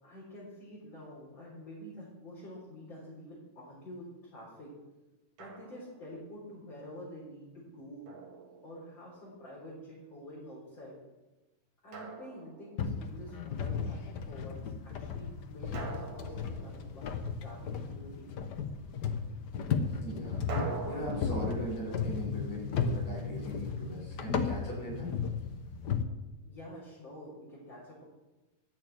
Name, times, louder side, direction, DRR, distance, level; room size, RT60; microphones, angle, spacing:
voice 1, 0.0-4.7 5.4-8.1 8.6-11.0 11.8-18.3 26.4-28.0, equal, 40° left, -7 dB, 4.4 m, -48 dB
Drum, 5.4-6.1 8.1-9.2 11.9-13.1 15.7-17.4 20.5-23.5, right 4 dB, 75° right, 3.3 m, -44 dB
sound 1, 12.8-26.0, left 6 dB, 85° left, 0.9 m, -35 dB
voice 2, 19.9-25.1, right 1 dB, 70° left, -7 dB, 6.5 m, -40 dB
13.5 x 6.5 x 8.8 m, 1.1 s
omnidirectional pair, 3.3 m